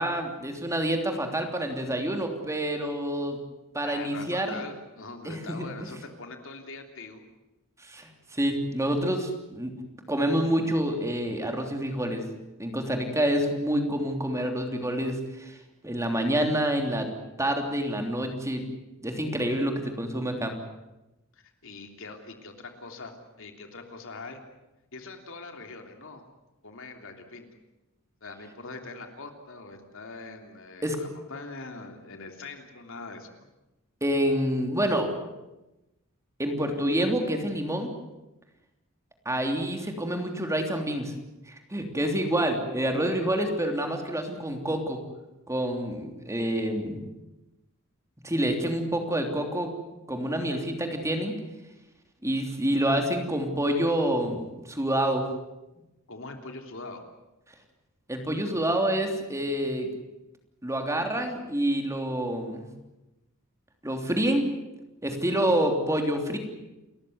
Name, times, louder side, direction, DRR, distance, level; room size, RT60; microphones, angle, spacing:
voice 1, 0.0-3.4 3.7-4.6 5.2-5.6 7.8-9.7 10.1-12.2 12.6-15.6 15.8-17.1 17.4-18.7 19.0-20.5 30.8-31.0 34.0-35.1 36.4-37.9 39.2-41.1 41.5-45.0 45.5-47.0 48.2-49.7 50.1-51.3 52.2-55.2 58.1-59.9 60.6-62.7 63.8-64.5 65.0-66.4, right 1 dB, 15° right, 4 dB, 3.2 m, -27 dB
voice 2, 3.8-7.2 21.3-24.4 24.9-26.2 26.6-27.5 28.2-33.5 56.1-57.0, left 3 dB, 65° left, 5 dB, 3.3 m, -42 dB
29.5 x 14.5 x 9.6 m, 0.99 s
head